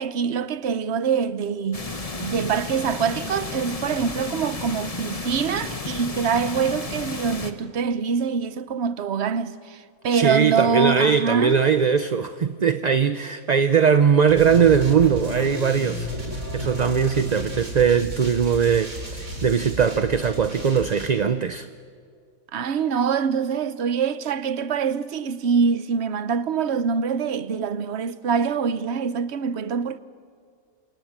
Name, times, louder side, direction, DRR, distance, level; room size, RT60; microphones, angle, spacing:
voice 1, 0.0-1.9 2.2-9.8 10.0-11.6 22.5-30.0, right 6 dB, 55° right, 1.1 m, -24 dB
sound 1, 1.7-7.5, left 3 dB, 25° left, 1.4 m, -32 dB
voice 2, 10.1-21.7, right 6 dB, 40° right, 0.7 m, -20 dB
sound 2, 14.3-21.1, equal, 75° right, 5.0 m, -33 dB
28.5 x 27.5 x 7.5 m
omnidirectional pair, 1.4 m